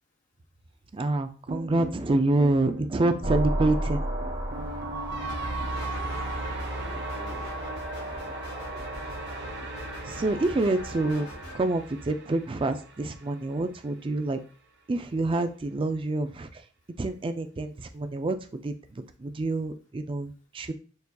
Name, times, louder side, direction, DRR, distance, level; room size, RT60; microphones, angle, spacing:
voice 1, 0.9-4.0 10.0-11.3 11.5-14.4 14.9-16.5 17.0-20.7, right 2 dB, 25° right, 8 dB, 0.4 m, -27 dB
sound 1, 1.5-13.7, right 2 dB, 60° right, 0.7 m, -38 dB
sound 2, 3.2-9.6, right 1 dB, 80° right, 1.8 m, -34 dB
sound 3, 5.2-11.6, left 1 dB, 80° left, 2.3 m, -42 dB
voice 2, 5.6-6.3 6.7-8.2, equal, 40° left, 2 dB, 0.9 m, -49 dB
6.5 x 2.8 x 2.3 m, 0.39 s
head